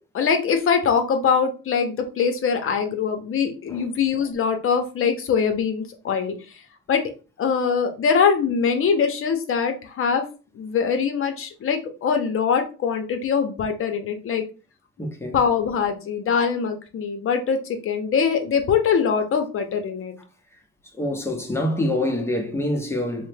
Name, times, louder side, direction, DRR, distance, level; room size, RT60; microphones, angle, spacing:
voice 1, 0.1-6.3 6.9-7.0 7.4-10.2 10.5-14.4 15.3-20.2, left 6 dB, 45° left, 0.7 m, -23 dB
voice 2, 15.0-15.4 21.0-23.3, left 1 dB, 10° left, 0.6 m, -26 dB
3.3 x 2.1 x 3.2 m
cardioid pair, 130°, 29 cm